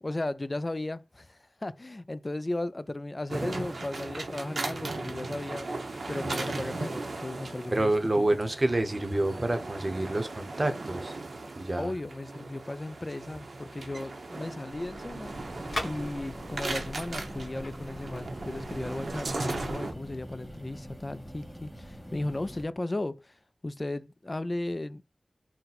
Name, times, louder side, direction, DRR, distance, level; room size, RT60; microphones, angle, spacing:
voice 1, 0.0-5.7 6.1-8.3 11.8-15.3 15.8-23.4 23.6-25.1, left 2 dB, 35° left, 0.3 m, -35 dB
sound 1, 3.3-19.9, right 2 dB, 80° right, 0.7 m, -37 dB
voice 2, 7.7-11.1 11.6-11.9, right 1 dB, 40° right, 0.7 m, -28 dB
sound 2, 14.7-19.7, left 1 dB, 60° left, 1.5 m, -42 dB
sound 3, 15.2-22.6, equal, ahead, 1.2 m, -45 dB
4.0 x 2.1 x 4.1 m
wide cardioid pair, 50°, 0 cm